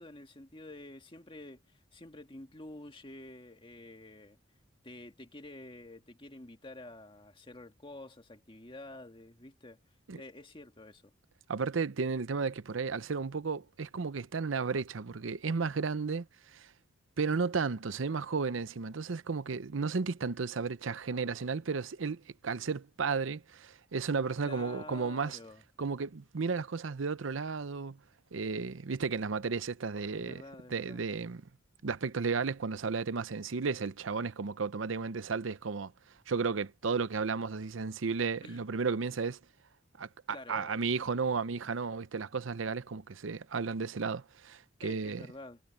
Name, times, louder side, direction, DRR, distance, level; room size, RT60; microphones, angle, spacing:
voice 1, 0.0-4.4 4.8-9.8 10.2-11.1 24.4-25.6 30.2-31.0 38.4-38.6 40.3-41.0 44.8-45.6, left 2 dB, 25° left, 1.9 m, -49 dB
voice 2, 11.5-16.7 17.2-25.4 25.8-28.0 28.3-30.4 30.7-31.4 31.8-35.9 36.3-39.4 40.0-45.2, right 5 dB, 80° right, 0.7 m, -33 dB
head